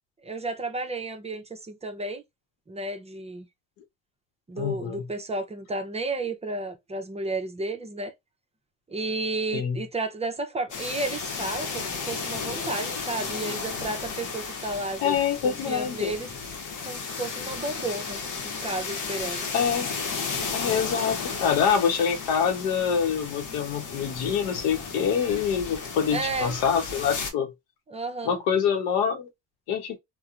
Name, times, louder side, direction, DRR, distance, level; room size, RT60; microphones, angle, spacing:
voice 1, 0.2-2.2 2.7-3.5 4.5-8.1 8.9-15.2 15.4-16.3 16.8-19.5 26.1-26.5 27.9-28.4, right 2 dB, 20° right, 0.6 m, -32 dB
voice 2, 4.6-5.0 9.5-9.8 15.0-16.1 19.5-19.9 20.5-27.5 28.2-29.3 29.7-30.0, left 7 dB, 90° left, 0.8 m, -25 dB
sound 1, 10.7-27.3, left 5 dB, 60° left, 0.8 m, -34 dB
2.8 x 2.1 x 2.4 m
cardioid pair, 95°, 35 cm